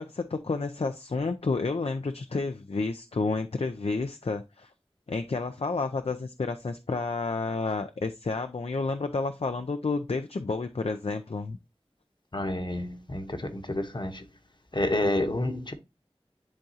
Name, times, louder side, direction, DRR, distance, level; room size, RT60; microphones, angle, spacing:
voice 1, 0.0-4.7 5.1-11.6, left 3 dB, 70° left, 0.5 m, -30 dB
voice 2, 12.3-14.2 14.7-15.7, left 1 dB, 50° left, 1.1 m, -29 dB
10.5 x 3.6 x 2.8 m
wide cardioid pair, 40°, 10 cm